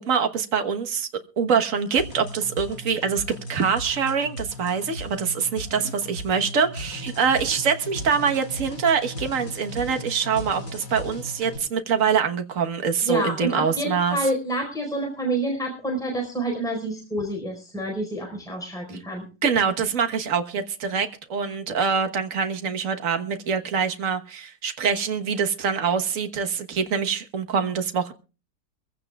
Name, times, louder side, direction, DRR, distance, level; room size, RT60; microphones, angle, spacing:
voice 1, 0.1-1.1 1.4-3.2 3.5-14.2 19.4-28.1, right 6 dB, 55° right, 1.6 m, -24 dB
sound 1, 2.0-11.6, left 1 dB, 70° left, 6.3 m, -37 dB
voice 2, 13.0-19.2, right 1 dB, ahead, 4.6 m, -28 dB
23.5 x 16.0 x 2.4 m
omnidirectional pair, 1.8 m